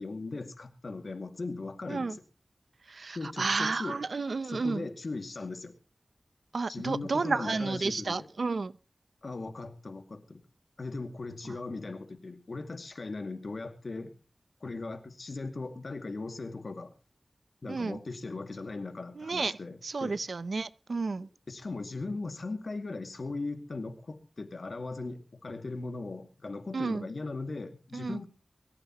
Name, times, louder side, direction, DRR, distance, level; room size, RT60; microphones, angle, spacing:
voice 1, 0.0-2.2 3.1-4.0 4.4-5.7 6.7-8.3 9.2-10.4 10.8-14.1 14.6-16.9 17.6-20.2 21.5-28.3, left 3 dB, 70° left, 2.2 m, -38 dB
voice 2, 2.9-4.9 6.5-8.7 17.7-18.0 19.2-19.6 19.8-21.3 26.7-27.1 27.9-28.2, right 4 dB, 80° right, 0.6 m, -31 dB
23.5 x 14.0 x 3.0 m
wide cardioid pair, 55°, 0 cm